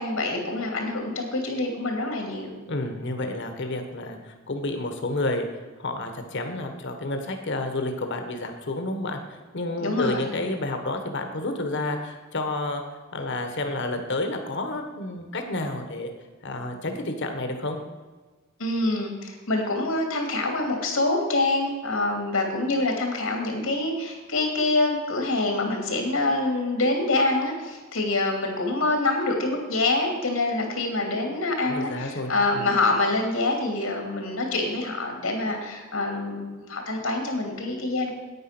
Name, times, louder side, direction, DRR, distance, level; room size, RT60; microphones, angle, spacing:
voice 1, 0.0-2.6 9.8-10.3 18.6-38.1, left 2 dB, 85° left, 3 dB, 2.8 m, -26 dB
voice 2, 2.7-5.4 5.8-12.8 13.1-16.1 16.4-17.8 31.6-32.7, left 2 dB, 60° left, 5 dB, 1.3 m, -30 dB
9.4 x 9.1 x 6.0 m, 1.3 s
head